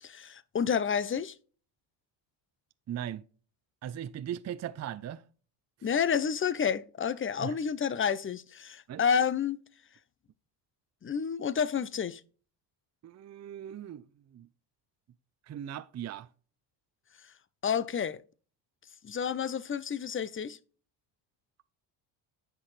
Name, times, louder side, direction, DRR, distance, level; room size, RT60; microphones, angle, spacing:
voice 1, 0.0-1.3 5.8-9.6 11.0-12.2 17.6-18.2 19.0-20.6, left 7 dB, 25° left, 0.7 m, -30 dB
voice 2, 2.9-3.2 3.8-5.2 7.4-7.6 8.9-9.0 13.0-14.0 14.3-14.5 15.5-16.3, right 10 dB, 35° right, 0.6 m, -38 dB
9.9 x 6.0 x 3.2 m
supercardioid pair, 75°, 50 cm